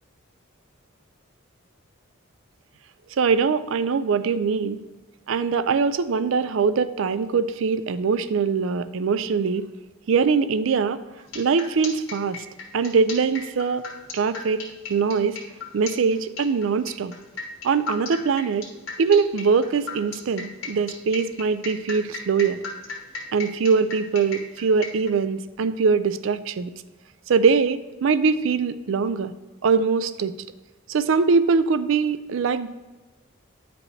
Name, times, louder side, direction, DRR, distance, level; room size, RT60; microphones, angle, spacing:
voice 1, 3.2-4.8 5.3-9.7 10.1-11.0 11.3-12.5 12.7-13.8 14.1-14.6 14.9-15.4 15.7-17.1 17.6-18.7 19.0-22.6 23.3-26.7 27.3-29.3 29.6-30.3 30.9-32.7, right 5 dB, 70° right, 14 dB, 0.4 m, -22 dB
sound 1, 11.2-25.1, left 4 dB, 80° left, 1.4 m, -36 dB
9.5 x 5.1 x 3.2 m, 1.2 s
head